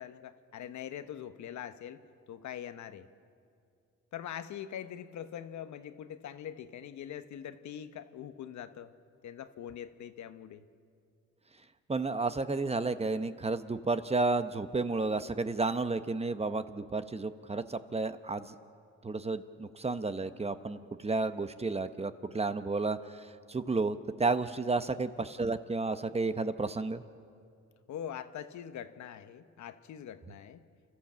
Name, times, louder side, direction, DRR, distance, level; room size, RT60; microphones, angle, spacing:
voice 1, 0.0-2.0 2.3-3.1 4.1-8.9 9.2-10.6 24.8-25.0 27.9-30.6, left 9 dB, 70° left, 10 dB, 1.1 m, -43 dB
voice 2, 11.9-18.5 19.0-27.0, right 3 dB, 20° right, 11 dB, 0.8 m, -32 dB
29.0 x 13.5 x 7.5 m, 2.4 s
cardioid pair, 90°, 30 cm